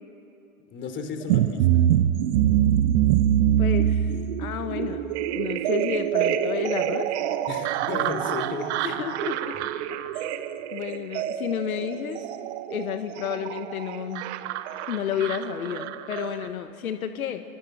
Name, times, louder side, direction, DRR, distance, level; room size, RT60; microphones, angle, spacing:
voice 1, 0.7-1.5 1.7-1.8 7.5-9.0 9.5-9.7, left 5 dB, 25° left, 7 dB, 3.2 m, -34 dB
sound 1, 1.3-16.5, right 11 dB, 50° right, 1.2 m, -25 dB
voice 2, 3.6-5.0 5.3-7.2 8.8-9.6 10.1-10.3 10.7-12.2 12.7-14.2 14.9-17.4, left 9 dB, 70° left, 8 dB, 1.5 m, -31 dB
23.5 x 23.0 x 7.9 m, 2.7 s
hypercardioid pair, 120°, 43 cm